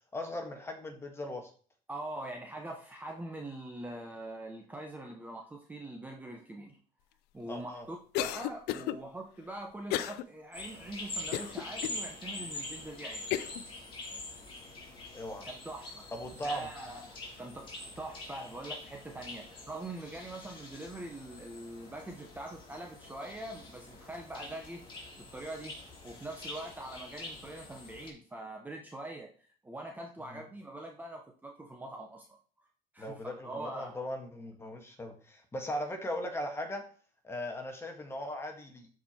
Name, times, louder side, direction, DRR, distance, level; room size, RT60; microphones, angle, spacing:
voice 1, 0.1-1.5 7.5-7.9 15.1-15.5 16.1-16.7 30.3-30.4 33.0-36.8 37.2-38.9, left 1 dB, 15° left, 4 dB, 1.8 m, -38 dB
voice 2, 1.9-6.8 7.3-13.4 14.1-14.2 15.5-16.1 16.4-25.7 26.0-29.3 29.6-32.7 32.9-33.9, right 1 dB, 10° right, 2 dB, 1.1 m, -43 dB
Cough, 8.1-9.0 9.9-10.2 10.7-10.8 11.3-12.0 12.6-12.7 13.3-13.6, left 13 dB, 75° left, 0.7 m, -33 dB
sound 1, 10.5-28.1, left 2 dB, 30° left, 3.6 m, -45 dB
12.5 x 5.0 x 4.5 m, 0.43 s
cardioid pair, 140°, 17 cm